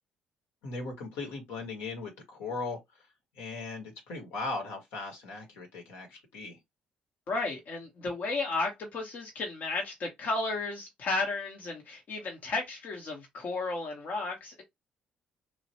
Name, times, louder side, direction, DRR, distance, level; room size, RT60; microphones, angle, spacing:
voice 1, 0.6-2.8 3.4-6.6, left 3 dB, 70° left, 1.2 m, -38 dB
voice 2, 7.3-14.6, left 3 dB, 55° left, 0.9 m, -33 dB
3.2 x 2.5 x 2.8 m
hypercardioid pair, 50°, 4 cm